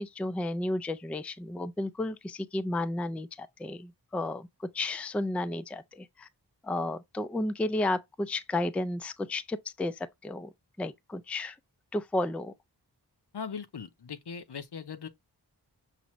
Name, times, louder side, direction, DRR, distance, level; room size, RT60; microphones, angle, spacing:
voice 1, 0.0-4.5 4.7-6.3 6.6-10.5 10.8-11.6 11.9-12.5, left 2 dB, 5° left, 0.3 m, -32 dB
voice 2, 13.3-15.1, left 6 dB, 70° left, 0.7 m, -39 dB
5.8 x 2.6 x 3.0 m
wide cardioid pair, 50°, 42 cm